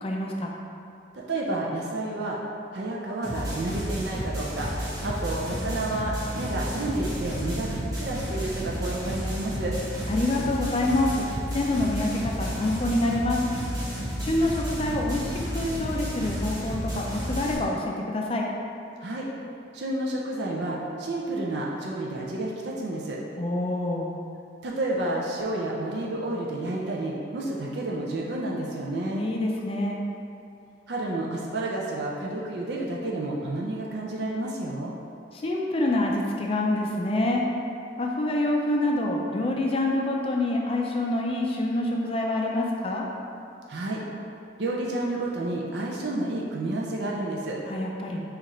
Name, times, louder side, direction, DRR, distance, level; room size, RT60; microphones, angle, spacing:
voice 1, 0.0-0.5 10.1-11.3 11.5-13.4 14.2-18.5 23.4-24.1 29.1-30.0 35.3-37.5 38.0-43.1 47.7-48.2, left 1 dB, 30° left, -1 dB, 0.4 m, -26 dB
voice 2, 1.1-2.4 2.7-4.7 5.0-9.8 19.0-19.3 19.7-23.2 24.6-29.3 30.9-34.9 43.7-44.0 44.6-47.6, right 2 dB, 60° right, -3 dB, 0.5 m, -30 dB
sound 1, 3.2-17.5, equal, 20° right, 1.1 m, -32 dB
6.7 x 2.5 x 3.0 m, 2.6 s
head